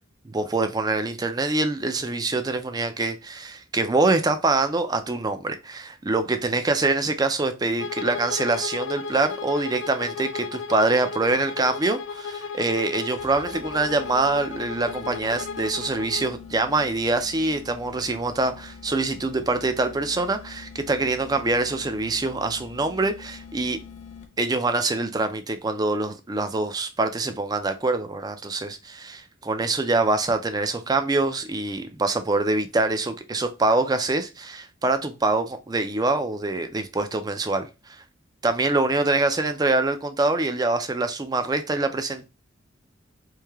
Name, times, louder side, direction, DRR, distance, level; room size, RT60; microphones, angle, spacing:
voice 1, 0.3-23.8 24.4-38.0 38.4-42.2, right 2 dB, 20° right, 0.4 m, -25 dB
Bowed string instrument, 7.8-16.3, left 5 dB, 85° left, 0.4 m, -35 dB
sound 1, 13.2-24.6, left 5 dB, 35° left, 0.7 m, -44 dB
3.2 x 2.8 x 3.4 m
head